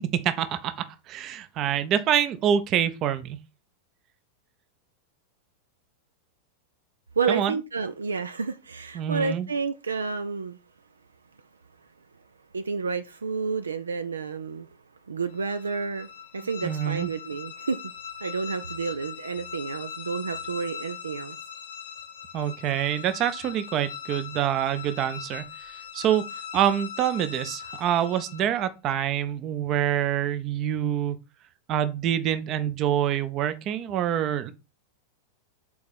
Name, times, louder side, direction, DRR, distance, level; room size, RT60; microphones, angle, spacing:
voice 1, 0.0-3.4 7.3-7.6 8.9-9.5 16.6-17.1 22.3-26.2 26.5-31.2 31.7-34.5, right 10 dB, 35° right, 0.7 m, -26 dB
voice 2, 7.2-10.6 12.5-14.7 15.1-16.1 16.3-17.8 18.2-21.4, right 5 dB, 75° right, 0.4 m, -30 dB
sound 1, 15.3-28.7, left 8 dB, 65° left, 1.1 m, -40 dB
4.8 x 4.1 x 5.2 m
figure-of-eight pair, 90°, 0 cm